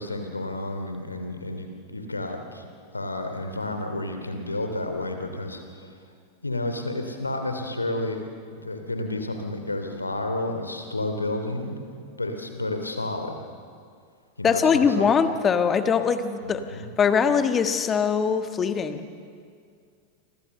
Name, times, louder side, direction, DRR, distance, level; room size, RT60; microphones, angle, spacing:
voice 1, 0.0-2.7 2.9-5.9 6.4-11.8 12.2-13.4 14.4-15.1 16.4-16.9, left 2 dB, 80° left, 6 dB, 2.8 m, -31 dB
voice 2, 14.4-19.1, left 6 dB, 20° left, 9 dB, 1.5 m, -22 dB
28.5 x 24.5 x 6.8 m, 2.2 s
figure-of-eight pair, 90°, 0 cm